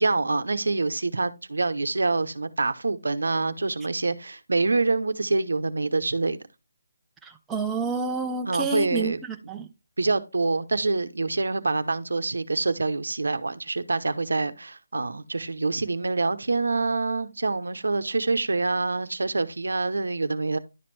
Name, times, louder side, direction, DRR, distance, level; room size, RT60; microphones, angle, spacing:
voice 1, 0.0-6.4 8.5-9.2 10.0-20.6, right 3 dB, 85° right, 0.7 m, -26 dB
voice 2, 7.2-9.7, right 4 dB, 10° right, 0.5 m, -29 dB
11.0 x 4.2 x 3.2 m
figure-of-eight pair, 165°, 0 cm